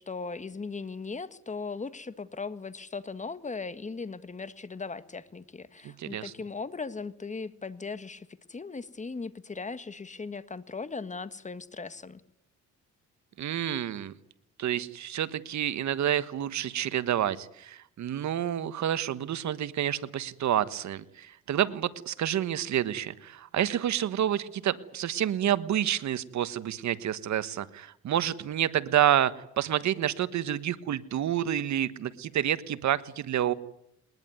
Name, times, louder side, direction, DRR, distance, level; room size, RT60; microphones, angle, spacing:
voice 1, 0.0-12.2, left 4 dB, 25° left, 13 dB, 1.6 m, -38 dB
voice 2, 5.8-6.3 13.4-14.1 14.6-33.5, right 11 dB, 65° right, 14 dB, 1.5 m, -29 dB
21.5 x 20.5 x 9.5 m, 0.75 s
cardioid pair, 90°, 30 cm